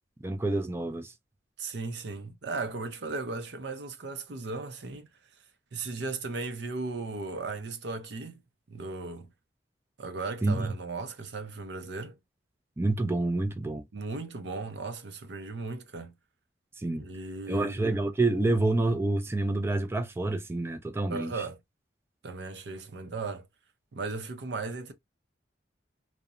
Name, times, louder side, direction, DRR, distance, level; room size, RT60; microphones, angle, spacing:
voice 1, 0.2-1.1 10.4-10.7 12.8-13.8 16.8-17.0 17.5-21.3, right 2 dB, 15° right, 0.3 m, -28 dB
voice 2, 1.6-5.1 5.7-8.4 8.7-9.3 10.0-12.2 13.9-16.1 16.9-17.9 21.1-21.6 22.2-23.5 23.9-24.9, right 3 dB, 65° right, 0.5 m, -36 dB
2.8 x 2.1 x 2.4 m
head